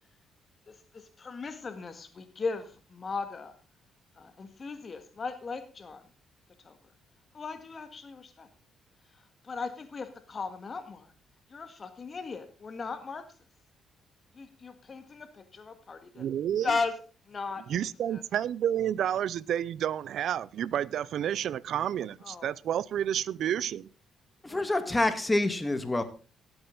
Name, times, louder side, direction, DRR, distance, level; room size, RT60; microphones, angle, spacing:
voice 1, 0.7-3.5 4.2-6.0 6.6-6.8 7.3-8.5 9.4-11.1 11.5-13.3 14.3-16.2 16.6-17.0 17.3-17.7 18.1-18.2 22.2-22.5 24.5-25.0, left 4 dB, 40° left, 1.8 m, -37 dB
voice 2, 16.2-16.7 17.7-23.9, right 10 dB, 70° right, 0.5 m, -30 dB
voice 3, 24.5-26.0, left 2 dB, 15° left, 1.9 m, -27 dB
17.5 x 8.0 x 3.9 m
cardioid pair, 90°, 0 cm